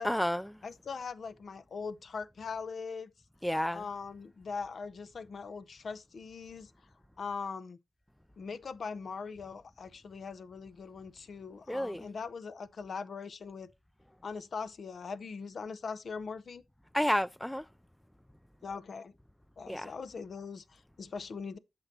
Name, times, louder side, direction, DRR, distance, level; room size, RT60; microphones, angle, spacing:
voice 1, 0.0-0.5 3.4-3.8 11.7-12.0 16.9-17.6 19.7-19.9, equal, 5° left, 0.4 m, -30 dB
voice 2, 0.6-3.1 3.7-6.7 7.2-7.8 8.4-13.7 14.2-16.6 18.6-19.1 19.6-21.6, left 5 dB, 65° left, 0.7 m, -41 dB
8.5 x 6.1 x 2.7 m
wide cardioid pair, 90°, 0 cm